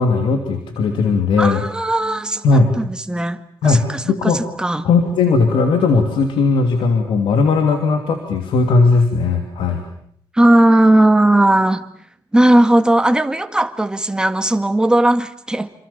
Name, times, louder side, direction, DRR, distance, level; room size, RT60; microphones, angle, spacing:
voice 1, 0.0-1.6 2.4-2.7 3.6-4.4 4.8-9.8, left 4 dB, 85° left, 5 dB, 3.1 m, -17 dB
voice 2, 1.4-4.9 10.3-11.8 12.3-15.7, right 1 dB, 10° right, 9 dB, 1.8 m, -16 dB
27.5 x 26.5 x 7.2 m, 0.63 s
cardioid pair, 120°, 8 cm